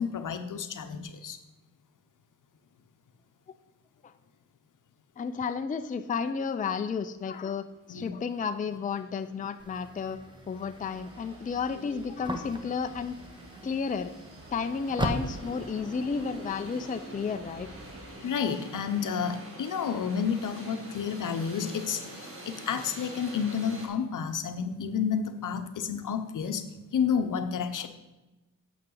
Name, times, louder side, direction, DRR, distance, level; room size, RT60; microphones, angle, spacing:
voice 1, 0.0-1.4 7.9-8.2 18.2-27.9, left 7 dB, 65° left, 8 dB, 0.8 m, -30 dB
voice 2, 5.2-10.2 10.5-13.1 13.6-14.1 14.5-17.7, left 5 dB, 25° left, 9 dB, 0.4 m, -32 dB
sound 1, 7.9-8.0 8.3-23.9, right 1 dB, 40° right, 2.0 m, -47 dB
sound 2, 9.6-18.1, right 1 dB, 15° right, 0.9 m, -40 dB
8.5 x 7.1 x 3.9 m, 1.1 s
cardioid pair, 80°, 33 cm